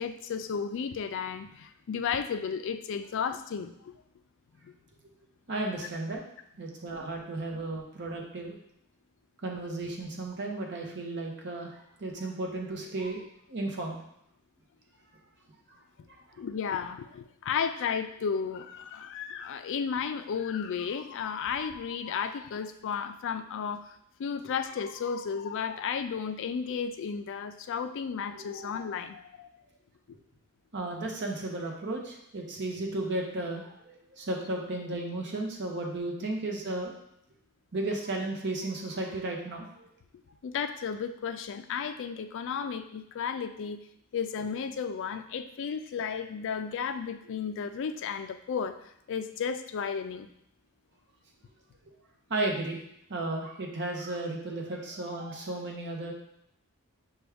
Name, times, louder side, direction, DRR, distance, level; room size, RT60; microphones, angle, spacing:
voice 1, 0.0-3.9 4.6-4.7 16.4-29.5 40.4-43.8 44.1-48.8 49.1-50.3, left 6 dB, 55° left, 9 dB, 0.3 m, -33 dB
voice 2, 5.5-6.2 6.6-8.6 9.4-13.2 13.5-14.0 15.7-15.8 16.1-16.2 28.3-28.6 30.7-36.9 37.7-39.9 52.3-52.8 53.1-56.1, right 2 dB, 50° right, 1 dB, 0.8 m, -34 dB
5.9 x 2.3 x 3.4 m, 0.74 s
head